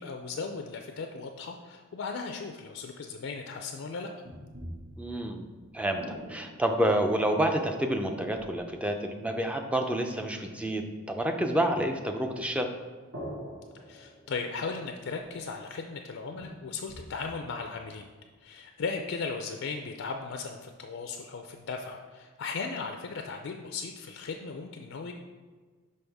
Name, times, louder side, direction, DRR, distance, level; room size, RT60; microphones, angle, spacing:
voice 1, 0.0-4.1 13.9-18.1 18.4-25.1, left 4 dB, 60° left, 4 dB, 0.4 m, -37 dB
sound 1, 4.2-8.9 13.1-15.5 15.9-16.0 16.3-18.7, equal, 70° right, 1.6 m, -46 dB
voice 2, 5.0-5.4 5.7-6.0 6.3-12.7, right 1 dB, 5° right, 5 dB, 0.4 m, -28 dB
5.4 x 5.4 x 3.4 m, 1.4 s
head